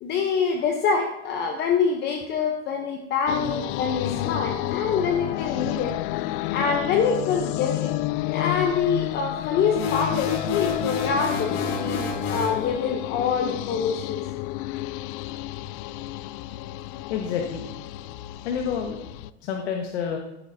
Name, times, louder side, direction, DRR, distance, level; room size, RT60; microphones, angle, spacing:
voice 1, 0.0-6.0 6.5-7.9 8.3-14.2, left 6 dB, 30° left, 3 dB, 0.9 m, -25 dB
sound 1, 3.3-19.3, left 15 dB, 55° left, 0.4 m, -30 dB
sound 2, 9.7-12.6, left 3 dB, 70° left, 3.3 m, -30 dB
voice 2, 17.1-17.7 18.4-19.0 19.4-20.2, left 7 dB, 90° left, 2 dB, 1.5 m, -28 dB
15.0 x 9.0 x 2.8 m, 0.95 s
supercardioid pair, 150°, 32 cm